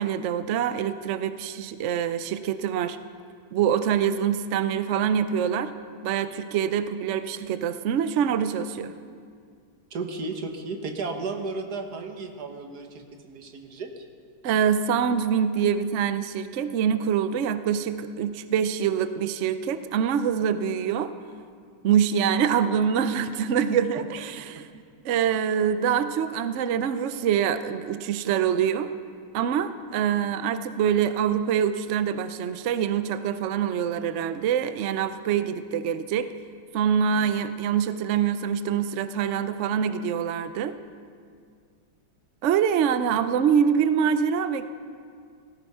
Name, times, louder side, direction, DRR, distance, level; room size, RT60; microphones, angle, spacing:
voice 1, 0.0-3.0 3.5-5.7 6.0-8.9 14.4-21.1 21.8-28.9 29.3-36.3 36.7-40.7 42.4-44.7, right 8 dB, 80° right, 11 dB, 0.6 m, -25 dB
voice 2, 9.9-14.0, right 3 dB, 55° right, 5 dB, 1.8 m, -34 dB
17.5 x 14.5 x 5.6 m, 2.1 s
omnidirectional pair, 2.1 m